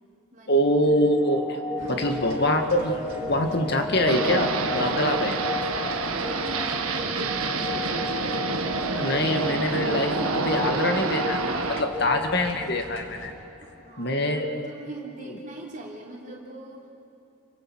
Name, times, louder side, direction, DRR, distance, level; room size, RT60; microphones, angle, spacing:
voice 1, 0.5-1.6 1.9-5.3 8.8-13.3 14.0-14.6, left 1 dB, 50° left, 5 dB, 2.0 m, -24 dB
sound 1, 0.8-13.6, left 2 dB, 10° right, 2.2 m, -34 dB
voice 2, 1.8-2.4 4.8-5.2 5.6-8.0 13.6-16.9, right 1 dB, 35° right, -2 dB, 4.0 m, -41 dB
sound 2, 1.8-13.3, right 1 dB, 70° right, 3.2 m, -42 dB
sound 3, 4.1-11.8, right 4 dB, 90° right, 1.6 m, -28 dB
28.0 x 25.0 x 6.3 m, 2.8 s
head